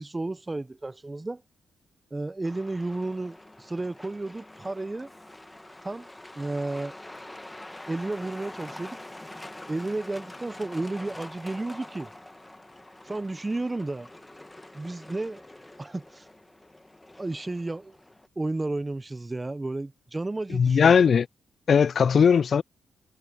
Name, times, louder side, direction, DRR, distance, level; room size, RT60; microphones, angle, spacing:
voice 1, 0.0-1.4 2.1-5.1 5.8-6.1 6.4-7.0 7.9-9.0 9.7-12.1 13.0-14.1 14.7-15.4 15.8-16.3 17.2-18.0 18.4-21.0, right 2 dB, 20° right, 0.7 m, -32 dB
Truck, 2.4-18.3, left 1 dB, 10° left, 1.4 m, -45 dB
voice 2, 20.5-21.3 21.7-22.6, left 6 dB, 55° left, 0.3 m, -19 dB
cardioid pair, 85°, 0 cm